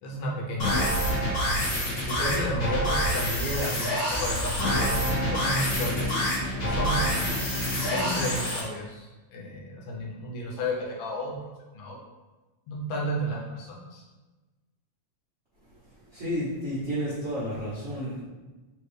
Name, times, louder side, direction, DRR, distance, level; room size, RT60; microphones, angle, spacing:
voice 1, 0.0-0.9 2.1-6.2 6.7-7.0 7.9-11.4 11.7-12.0 12.7-14.0, equal, 75° left, -2 dB, 1.9 m, -33 dB
sound 1, 0.6-8.6, equal, 60° left, 0.9 m, -27 dB
voice 2, 16.1-18.2, equal, 75° right, -12 dB, 0.6 m, -31 dB
4.4 x 3.1 x 3.2 m, 1.2 s
omnidirectional pair, 3.3 m